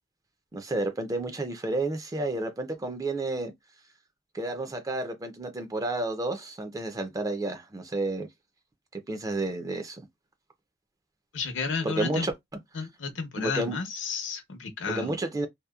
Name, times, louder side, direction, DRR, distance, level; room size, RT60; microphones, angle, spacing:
voice 1, 0.5-3.5 4.3-8.3 8.9-10.1 11.8-12.3 13.4-13.8 15.0-15.5, right 2 dB, 20° right, 0.4 m, -31 dB
voice 2, 11.3-12.3 12.7-15.1, left 5 dB, 75° left, 0.7 m, -32 dB
2.8 x 2.0 x 2.3 m
head